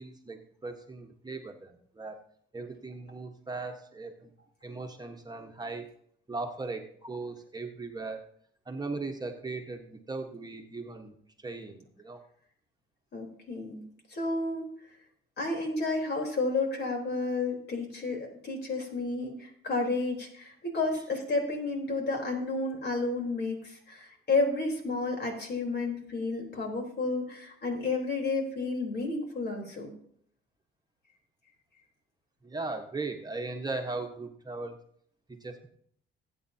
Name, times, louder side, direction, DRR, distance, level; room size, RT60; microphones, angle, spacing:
voice 1, 0.0-2.2 2.5-4.3 4.6-5.8 6.3-8.3 8.7-11.1 11.4-12.2 32.4-34.7 35.3-35.7, right 3 dB, 20° right, 3 dB, 1.3 m, -38 dB
voice 2, 13.1-13.8 14.1-14.7 15.4-29.9, left 3 dB, 55° left, 1 dB, 3.9 m, -31 dB
19.0 x 8.7 x 2.8 m, 0.65 s
cardioid pair, 90°, 20 cm